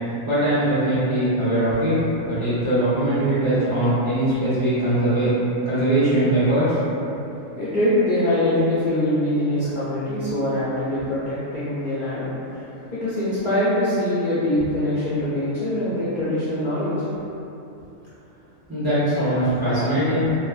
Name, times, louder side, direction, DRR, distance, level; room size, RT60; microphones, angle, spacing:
voice 1, 0.3-1.9 2.2-5.3 5.6-6.6 18.7-20.3, right 1 dB, 30° right, -13 dB, 0.4 m, -21 dB
voice 2, 7.6-12.6 12.9-16.9, left 1 dB, 55° left, -13 dB, 0.5 m, -23 dB
2.7 x 2.3 x 2.3 m, 2.9 s
omnidirectional pair, 1.4 m